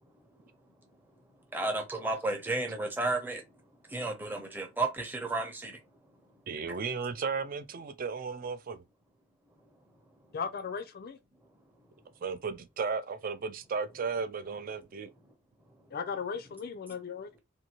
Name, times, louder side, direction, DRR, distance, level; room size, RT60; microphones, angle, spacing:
voice 1, 1.5-3.4 3.9-5.8, right 2 dB, 10° right, 0.7 m, -32 dB
voice 2, 6.5-8.8 12.2-15.1, right 5 dB, 45° right, 0.4 m, -35 dB
voice 3, 10.3-11.2 15.9-17.3, left 6 dB, 50° left, 0.4 m, -36 dB
2.6 x 2.6 x 2.9 m
head